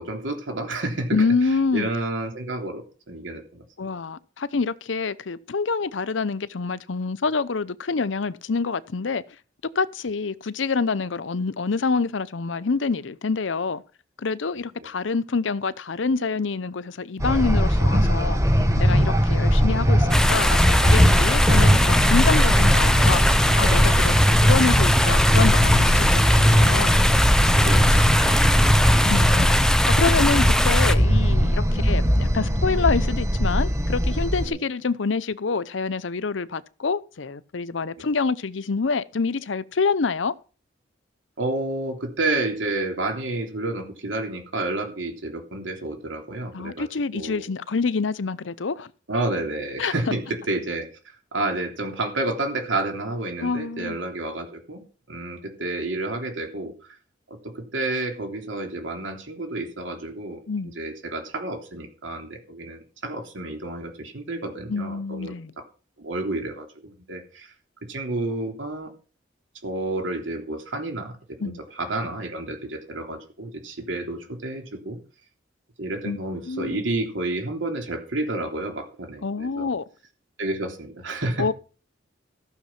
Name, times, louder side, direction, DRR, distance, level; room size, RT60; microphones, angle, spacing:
voice 1, 0.0-1.2 1.7-3.6 14.8-14.9 19.3-19.4 27.6-28.4 34.4-34.6 41.4-46.9 47.1-47.4 49.1-50.9 51.3-54.8 55.1-56.7 57.3-60.4 60.7-65.6 66.0-67.5 67.9-68.9 69.6-71.2 71.4-75.0 75.8-79.7 80.4-81.5, right 2 dB, 85° right, 3.3 m, -30 dB
voice 2, 1.1-1.9 3.8-9.2 9.8-13.8 14.2-18.4 18.8-23.2 23.6-27.0 28.5-40.3 46.5-48.9 49.8-49.9 53.4-54.0 60.5-60.7 64.7-65.5 71.4-71.6 76.0-76.2 76.5-76.8 79.2-79.8 81.4-81.5, left 4 dB, 80° left, 0.7 m, -26 dB
sound 1, 17.2-34.5, equal, 15° right, 1.5 m, -19 dB
sound 2, 20.1-31.0, left 1 dB, 5° left, 0.7 m, -22 dB
14.5 x 6.5 x 5.9 m
head